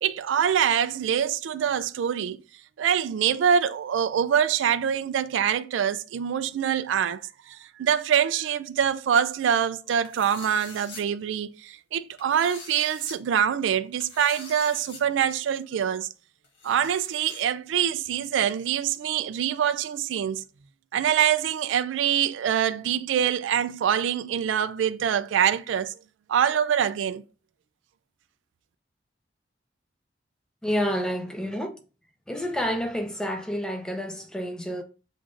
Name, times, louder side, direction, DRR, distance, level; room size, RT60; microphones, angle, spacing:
voice 1, 0.0-2.4 2.8-7.2 7.5-16.1 16.6-20.4 20.9-25.9 26.3-27.2, right 8 dB, 85° right, 0.3 m, -25 dB
sound 1, 10.0-11.0 12.2-13.2 14.0-15.0 15.3-15.4 16.4-17.4, left 3 dB, 90° left, 1.4 m, -44 dB
voice 2, 30.6-31.8 32.3-34.8, equal, 5° left, 0.5 m, -29 dB
7.4 x 2.5 x 2.5 m
head